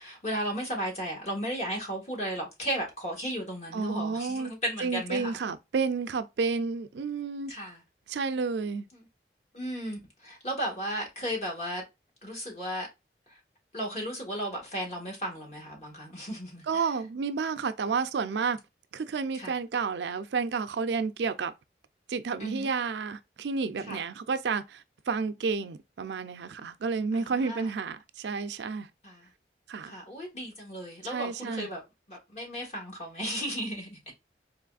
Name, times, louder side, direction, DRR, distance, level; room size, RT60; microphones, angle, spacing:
voice 1, 0.0-5.4 7.5-7.8 8.9-9.0 9.5-11.8 12.2-12.9 13.3-13.4 13.7-16.9 19.3-19.5 22.4-22.7 23.8-24.0 27.1-27.7 29.0-29.3 29.8-31.8 32.1-34.1, equal, 40° left, 1.6 m, -35 dB
voice 2, 3.7-4.5 4.8-7.5 8.1-8.9 16.7-18.6 18.9-21.5 22.1-28.9 29.7-29.9 31.0-31.7, right 5 dB, 80° right, 0.4 m, -31 dB
4.0 x 3.0 x 2.3 m
head